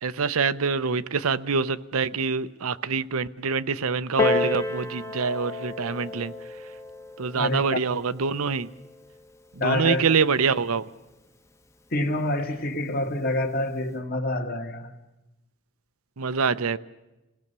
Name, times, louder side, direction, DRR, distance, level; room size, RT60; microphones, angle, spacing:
voice 1, 0.0-6.3 7.2-8.7 9.6-10.8 16.2-16.8, right 5 dB, 85° right, 14 dB, 0.7 m, -25 dB
Piano, 4.2-9.4 10.2-10.3, left 2 dB, 15° left, 0.9 m, -31 dB
voice 2, 7.4-7.8 9.6-10.0 10.3-10.4 11.9-14.9, left 1 dB, 45° left, 5 dB, 1.9 m, -27 dB
28.5 x 18.5 x 6.8 m, 1.0 s
head